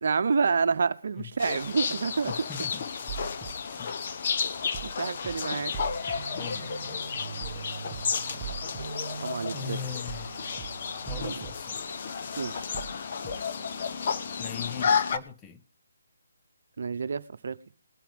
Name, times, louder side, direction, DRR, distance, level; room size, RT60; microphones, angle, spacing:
voice 1, 0.0-2.3 4.8-5.7 6.0-6.2 9.2-9.8 11.2-11.3 12.4-12.7 16.8-17.6, right 5 dB, 60° right, 0.9 m, -28 dB
sound 1, 1.4-15.2, left 6 dB, 45° left, 1.0 m, -32 dB
voice 2, 2.3-4.0 6.3-7.1 9.5-11.9 14.0-15.6, left 7 dB, 15° left, 0.6 m, -41 dB
sound 2, 3.1-3.5 4.7-4.9 5.2-5.3 5.7-6.2 7.4-7.6 7.9-8.0 8.4-8.8 10.1-10.3 10.6-10.7 11.1-11.5 12.7-12.9 13.2-13.3, right 8 dB, 20° right, 1.3 m, -39 dB
sound 3, 6.1-11.3, right 6 dB, 45° right, 2.1 m, -43 dB
21.0 x 9.2 x 3.6 m
hypercardioid pair, 160°, 0 cm